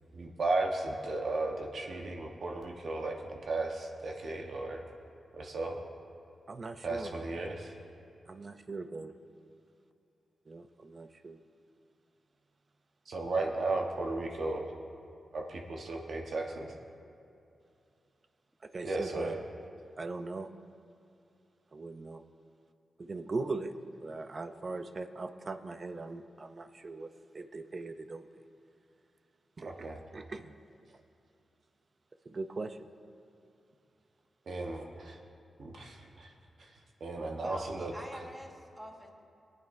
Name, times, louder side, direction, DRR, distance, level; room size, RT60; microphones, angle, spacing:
voice 1, 0.1-4.8 5.3-5.8 6.8-7.7 13.1-14.7 15.3-16.7 18.8-19.4 29.7-30.0 34.5-35.2 35.6-36.3 37.0-38.3, right 2 dB, 65° right, 1 dB, 1.1 m, -35 dB
voice 2, 6.5-7.1 8.4-9.2 10.5-11.4 18.7-19.4 20.0-20.5 21.7-22.2 23.0-23.7 24.0-28.2 29.6-29.9 30.1-30.5 30.9-31.0 32.3-32.9, right 3 dB, 40° right, 9 dB, 0.5 m, -40 dB
voice 3, 37.4-39.1, equal, 10° right, 1 dB, 1.3 m, -46 dB
22.0 x 8.9 x 2.6 m, 2.6 s
cardioid pair, 85°, 0 cm